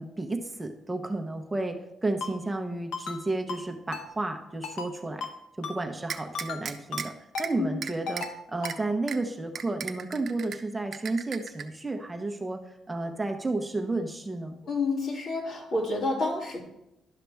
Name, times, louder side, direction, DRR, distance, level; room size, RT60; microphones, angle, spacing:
voice 1, 0.0-5.3 5.6-7.1 7.4-12.6 12.9-14.6, right 2 dB, 15° right, 5 dB, 0.8 m, -32 dB
Ringtone, 2.2-2.3 2.9-3.2 3.5-3.6 3.9-4.1 4.6-4.9 5.2-5.3 5.6-5.8 6.3-6.6 6.9-7.0 7.3-7.5 8.1-8.3 8.6-8.8, left 5 dB, 85° left, 1.0 m, -35 dB
sound 1, 6.1-7.1 7.4-7.5 7.8-8.3 8.7-8.8 9.1-9.2 9.6-10.6 10.9-11.6, right 7 dB, 60° right, 0.7 m, -35 dB
voice 2, 14.6-16.6, left 3 dB, 60° left, -2 dB, 2.7 m, -29 dB
11.5 x 5.8 x 3.5 m, 0.86 s
cardioid pair, 90°, 0 cm